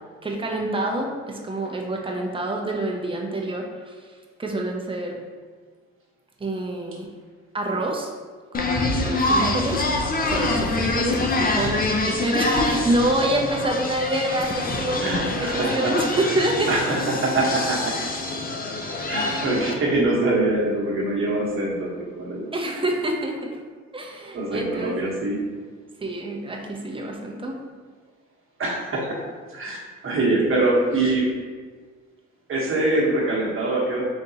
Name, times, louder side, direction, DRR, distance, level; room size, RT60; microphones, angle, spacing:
voice 1, 0.2-5.2 6.4-7.1 7.5-8.1 8.5-9.8 10.3-16.9 22.5-23.6 23.9-25.2 26.0-27.6, right 1 dB, 20° right, 0 dB, 0.6 m, -27 dB
sound 1, 8.5-19.7, left 2 dB, 30° left, 0.5 m, -25 dB
voice 2, 15.0-16.3 16.7-18.0 19.1-22.5 24.3-25.4 28.6-29.2 29.5-31.3 32.5-34.0, right 2 dB, 45° right, -3 dB, 1.1 m, -24 dB
4.0 x 3.4 x 2.8 m, 1.5 s
cardioid pair, 90°, 30 cm